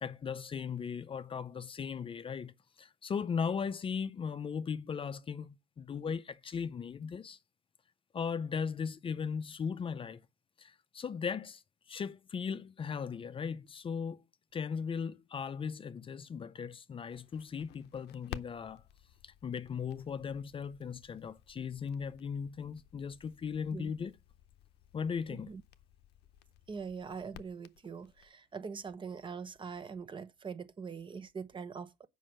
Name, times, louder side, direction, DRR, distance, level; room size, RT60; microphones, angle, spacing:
voice 1, 0.0-7.4 8.1-10.2 10.6-11.6 11.9-14.2 14.5-18.8 19.2-24.1 24.9-25.5, left 6 dB, 30° left, 0.5 m, -37 dB
Crackle, 17.1-28.3, left 12 dB, 75° left, 0.6 m, -54 dB
voice 2, 25.3-25.6 26.7-32.1, right 5 dB, 30° right, 0.9 m, -43 dB
7.5 x 5.5 x 6.3 m
cardioid pair, 110°, 17 cm